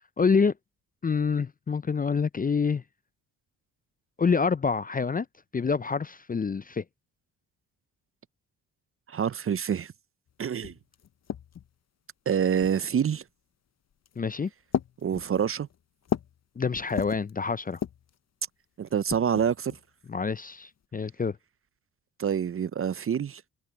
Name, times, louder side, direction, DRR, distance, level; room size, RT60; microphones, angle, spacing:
voice 1, 0.2-0.5 1.0-2.8 4.2-5.3 5.5-6.8 14.2-14.5 16.6-17.8 20.1-21.4, left 5 dB, 20° left, 0.6 m, -26 dB
voice 2, 9.1-9.9 10.4-10.7 12.3-13.2 15.0-15.7 18.8-19.8 22.2-23.4, right 8 dB, 35° right, 0.6 m, -27 dB
sound 1, 10.3-10.4 10.6-11.8 12.6-13.1 13.9-14.2 14.7-16.4 16.7-17.3 17.7-18.2 18.9-19.8, left 8 dB, 40° left, 0.9 m, -35 dB
hypercardioid pair, 55°, 41 cm